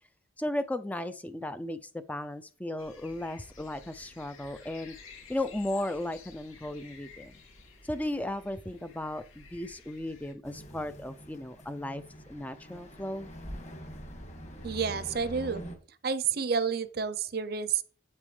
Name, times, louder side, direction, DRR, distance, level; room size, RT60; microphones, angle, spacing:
voice 1, 0.4-5.0 5.3-7.3 7.8-12.0 12.3-13.3, left 1 dB, 5° left, 0.3 m, -35 dB
sound 1, 2.8-10.3, left 4 dB, 90° left, 2.4 m, -52 dB
sound 2, 10.4-15.8, equal, 35° left, 1.7 m, -44 dB
voice 2, 14.6-15.6 16.0-17.8, right 6 dB, 50° right, 0.6 m, -30 dB
8.5 x 8.2 x 3.2 m
head